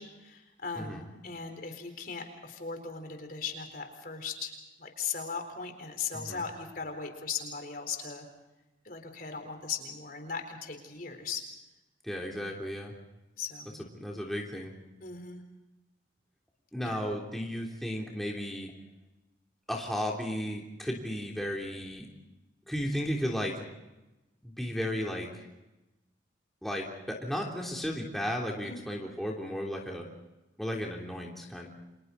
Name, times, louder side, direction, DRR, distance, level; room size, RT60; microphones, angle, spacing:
voice 1, 0.0-8.3 8.8-11.4 13.4-13.8 15.0-15.4 16.8-17.0 28.6-28.8, left 5 dB, 50° left, 5 dB, 4.2 m, -38 dB
voice 2, 12.0-12.9 13.8-14.7 16.7-18.7 19.7-22.1 22.7-23.6 24.4-25.5 26.6-30.1 30.6-31.7, equal, ahead, -2 dB, 3.4 m, -34 dB
30.0 x 27.0 x 4.2 m, 0.99 s
head